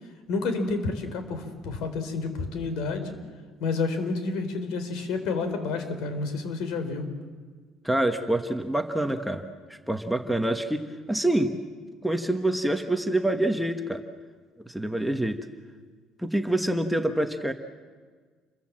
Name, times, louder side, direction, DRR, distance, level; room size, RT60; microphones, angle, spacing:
voice 1, 0.3-3.1 3.6-7.1, left 4 dB, 75° left, 8 dB, 4.3 m, -29 dB
voice 2, 7.8-9.4 9.9-11.5 12.0-14.0 14.7-15.4 16.2-17.5, right 1 dB, ahead, 5 dB, 1.2 m, -26 dB
28.5 x 22.5 x 7.6 m, 1.5 s
cardioid pair, 165°, 0 cm